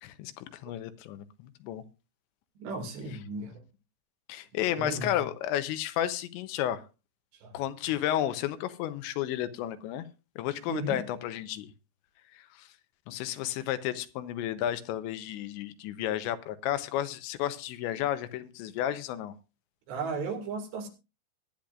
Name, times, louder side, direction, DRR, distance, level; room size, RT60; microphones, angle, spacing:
voice 1, 0.0-1.8 4.3-6.8 7.5-10.1 10.4-11.7 12.3-12.7 13.1-19.3, left 12 dB, 90° left, 3.2 m, -32 dB
voice 2, 2.6-3.6 4.8-5.1 7.4-7.6 10.7-11.0 19.9-20.9, right 3 dB, 70° right, 4.4 m, -35 dB
21.0 x 10.0 x 2.5 m
omnidirectional pair, 5.1 m